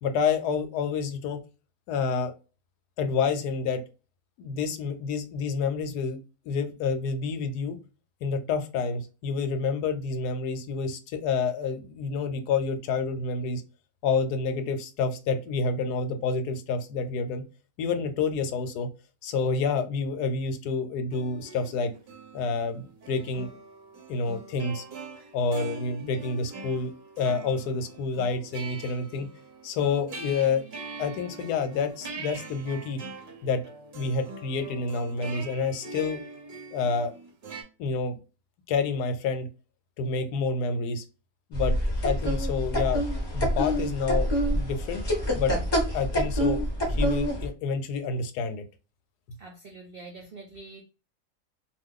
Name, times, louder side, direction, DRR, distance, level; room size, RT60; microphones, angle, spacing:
voice 1, 0.0-1.4 1.9-2.3 3.0-3.8 4.4-6.2 6.5-7.8 8.2-13.6 14.0-17.4 17.8-18.9 19.2-21.9 22.3-23.5 24.1-24.8 25.3-26.9 27.2-29.3 29.6-30.6 31.0-33.0 33.4-33.6 33.9-36.2 36.7-37.1 37.8-38.1 38.7-39.5 40.0-41.0 41.5-43.0 43.3-45.1 45.3-45.5 45.9-46.6 46.9-48.6, left 4 dB, 80° left, 8 dB, 1.1 m, -28 dB
sound 1, 21.1-37.6, right 4 dB, 50° right, 0.8 m, -43 dB
sound 2, 41.5-47.5, equal, 20° left, 0.6 m, -26 dB
voice 2, 49.4-50.8, right 3 dB, 75° right, 1 dB, 0.5 m, -45 dB
2.5 x 2.3 x 3.6 m, 0.32 s
omnidirectional pair, 1.7 m